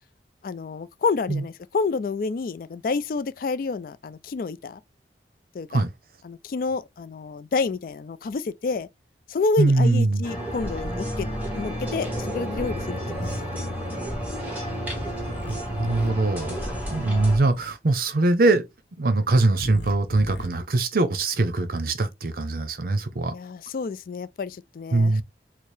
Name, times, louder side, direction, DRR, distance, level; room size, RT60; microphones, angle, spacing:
voice 1, 0.4-4.8 5.5-5.8 6.2-8.9 9.3-13.5 13.9-14.1 23.3-25.2, left 4 dB, 50° left, 0.3 m, -29 dB
voice 2, 9.6-10.2 15.5-18.6 19.0-23.3 24.9-25.2, right 2 dB, 55° right, 0.6 m, -22 dB
sound 1, 10.2-17.4, equal, 10° right, 1.3 m, -31 dB
sound 2, 13.0-13.4 15.2-16.1 17.4-17.7 19.5-20.5, equal, 80° left, 0.8 m, -37 dB
4.4 x 2.0 x 3.2 m
head